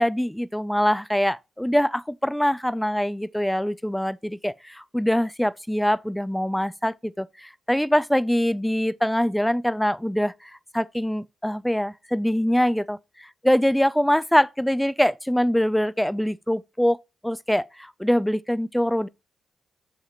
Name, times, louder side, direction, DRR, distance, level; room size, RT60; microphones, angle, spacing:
voice 1, 0.0-17.0 17.2-19.1, equal, 5° left, 0.3 m, -24 dB
7.2 x 2.9 x 4.8 m
cardioid pair, 110°, 0 cm